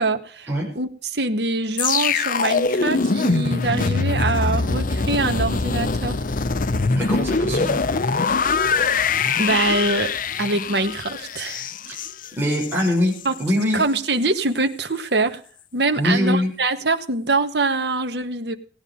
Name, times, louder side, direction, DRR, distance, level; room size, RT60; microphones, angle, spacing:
voice 1, 0.0-0.5 0.8-6.2 9.4-10.1 10.4-11.7 13.3-13.4 13.7-15.4 15.7-18.6, right 3 dB, 65° right, 7 dB, 1.7 m, -24 dB
sound 1, 1.8-12.9 13.2-13.4, left 4 dB, 50° left, 0.7 m, -23 dB
voice 2, 6.9-7.8 11.8-12.0 12.4-13.1 13.4-13.8 16.0-16.5, left 1 dB, 10° right, -5 dB, 6.1 m, -22 dB
17.5 x 9.7 x 5.3 m, 0.43 s
head